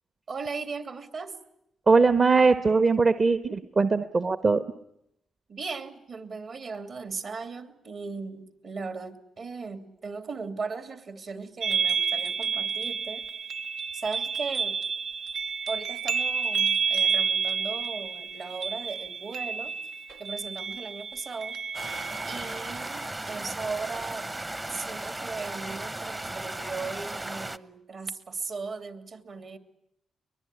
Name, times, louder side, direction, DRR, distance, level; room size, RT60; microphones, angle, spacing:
voice 1, 0.3-1.3 5.5-13.3 13.9-14.8 15.7-19.7 20.2-21.6 22.3-24.4 24.7-29.6, right 4 dB, 55° right, 8 dB, 2.9 m, -37 dB
voice 2, 1.9-4.6, right 4 dB, 40° right, 11 dB, 1.1 m, -21 dB
sound 1, 11.6-23.0, right 6 dB, 80° right, 1.1 m, -30 dB
sound 2, 21.7-27.6, right 2 dB, 20° right, 0.9 m, -36 dB
23.0 x 21.5 x 9.9 m, 0.78 s
cardioid pair, 80°, 0 cm